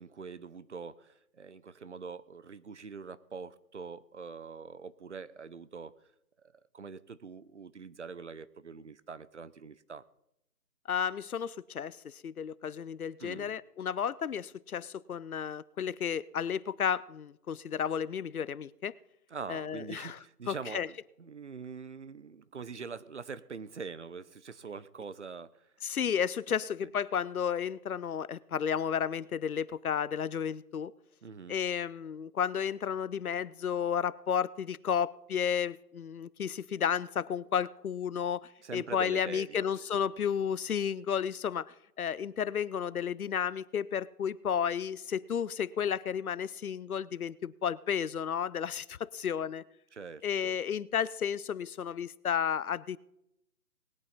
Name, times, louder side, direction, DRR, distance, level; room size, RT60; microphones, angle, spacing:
voice 1, 0.0-5.9 6.7-10.0 13.2-13.6 19.3-25.7 26.8-26.9 31.2-31.6 38.6-39.7 49.9-50.6, right 5 dB, 50° right, 17 dB, 0.6 m, -44 dB
voice 2, 10.9-18.9 19.5-20.2 20.5-20.9 25.8-30.9 31.5-49.6 50.2-53.0, left 8 dB, 65° left, 20 dB, 0.6 m, -32 dB
20.0 x 8.8 x 4.1 m, 0.81 s
figure-of-eight pair, 160°, 47 cm